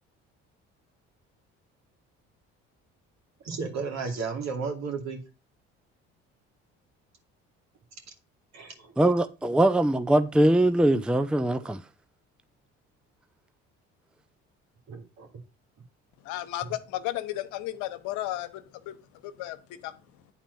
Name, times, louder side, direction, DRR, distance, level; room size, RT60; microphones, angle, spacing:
voice 1, 3.4-5.2 8.5-8.9 14.9-15.3, right 5 dB, 65° right, 2.5 m, -33 dB
voice 2, 9.0-11.8, right 1 dB, 5° right, 0.5 m, -22 dB
voice 3, 16.2-19.0 19.2-19.9, left 15 dB, 80° left, 0.9 m, -34 dB
9.1 x 4.2 x 5.3 m
supercardioid pair, 75°, 29 cm